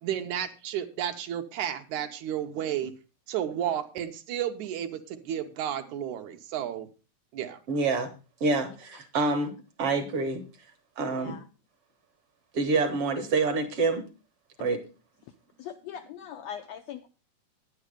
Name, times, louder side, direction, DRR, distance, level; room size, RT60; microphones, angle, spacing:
voice 1, 0.0-2.9 3.3-6.9 7.3-7.6, right 10 dB, 75° right, 7 dB, 2.2 m, -32 dB
voice 2, 7.7-8.1 8.4-9.5 9.8-10.4 11.0-11.4 12.5-14.0 14.6-14.8, right 3 dB, 55° right, 7 dB, 1.9 m, -26 dB
voice 3, 11.1-11.4 15.6-17.1, left 9 dB, 80° left, 7 dB, 1.5 m, -41 dB
10.5 x 9.2 x 4.9 m, 0.32 s
omnidirectional pair, 3.7 m